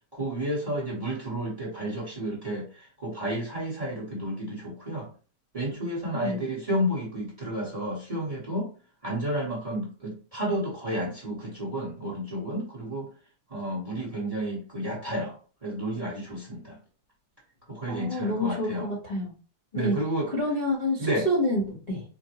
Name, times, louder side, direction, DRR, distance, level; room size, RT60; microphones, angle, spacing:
voice 1, 0.1-5.1 5.5-8.7 9.0-13.1 13.5-15.4 15.6-16.8 17.7-18.9 19.7-20.3 21.0-21.3, equal, 25° right, -4 dB, 1.0 m, -31 dB
voice 2, 17.9-19.3 19.7-20.0 20.3-22.0, left 1 dB, 30° left, -6 dB, 0.8 m, -28 dB
5.1 x 2.2 x 2.9 m, 0.38 s
omnidirectional pair, 2.0 m